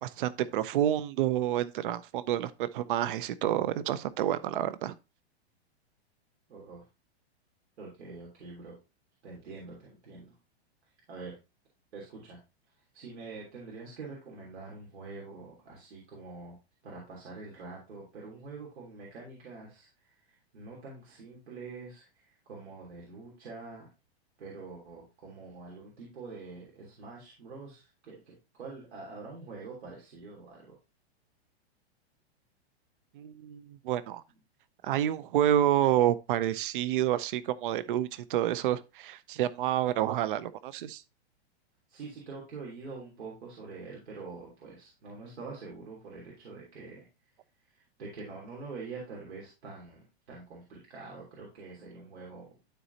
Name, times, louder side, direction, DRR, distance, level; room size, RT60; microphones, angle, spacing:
voice 1, 0.0-4.9 33.2-34.2 34.8-41.0, right 12 dB, 50° right, 0.5 m, -29 dB
voice 2, 6.5-6.9 7.8-8.8 9.2-10.4 11.1-11.4 11.9-12.4 12.9-16.6 16.8-23.9 24.4-30.8 41.9-47.1 47.7-52.6, right 4 dB, 85° right, 3.3 m, -45 dB
12.5 x 4.1 x 2.7 m
supercardioid pair, 175°, 33 cm